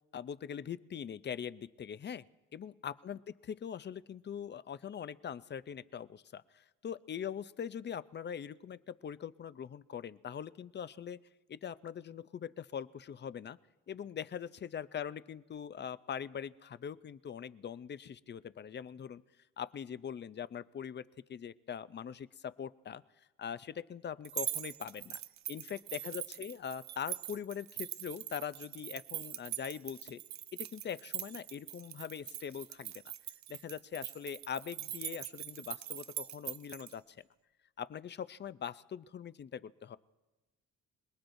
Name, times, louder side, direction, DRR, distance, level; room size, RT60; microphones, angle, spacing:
voice 1, 0.1-2.3 2.5-11.2 11.5-13.6 13.9-19.2 19.6-23.0 23.4-25.2 25.5-30.2 30.7-33.0 33.5-37.2 37.8-40.0, left 8 dB, 35° left, 16 dB, 0.5 m, -42 dB
sound 1, 24.2-36.9, right 12 dB, 65° right, 0.5 m, -42 dB
26.0 x 19.0 x 2.6 m, 1.1 s
cardioid pair, 90°, 30 cm